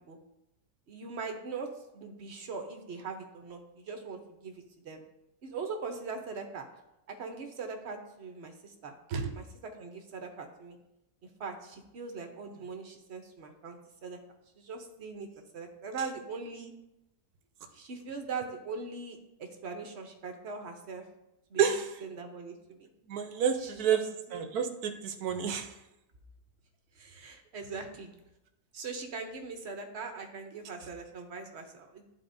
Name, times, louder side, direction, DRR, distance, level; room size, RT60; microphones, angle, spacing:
voice 1, 0.9-5.0 5.4-6.6 7.1-8.9 9.3-10.8 11.4-14.2 14.6-15.3 15.5-16.7 17.7-21.0 21.5-21.8 22.0-22.9 23.6-24.0 24.3-24.4 26.9-28.1 28.7-32.1, right 4 dB, 50° right, 4 dB, 0.9 m, -41 dB
voice 2, 21.6-21.9 23.1-24.0 24.3-25.7, right 7 dB, 75° right, 6 dB, 1.2 m, -29 dB
12.0 x 4.1 x 2.6 m, 0.90 s
omnidirectional pair, 1.7 m